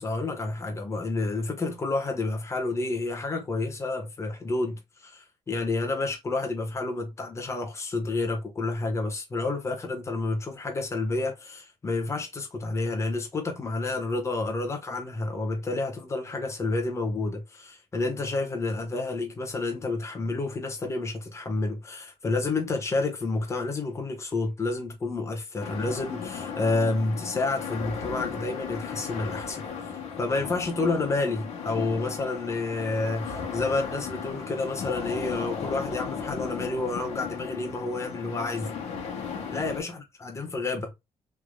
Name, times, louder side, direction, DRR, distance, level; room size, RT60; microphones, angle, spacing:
voice 1, 0.0-29.6 30.2-38.7 39.5-40.9, left 3 dB, 25° left, 1.2 m, -29 dB
sound 1, 25.6-39.8, left 6 dB, 90° left, 1.2 m, -36 dB
3.4 x 3.1 x 2.3 m
cardioid pair, 115°, 11 cm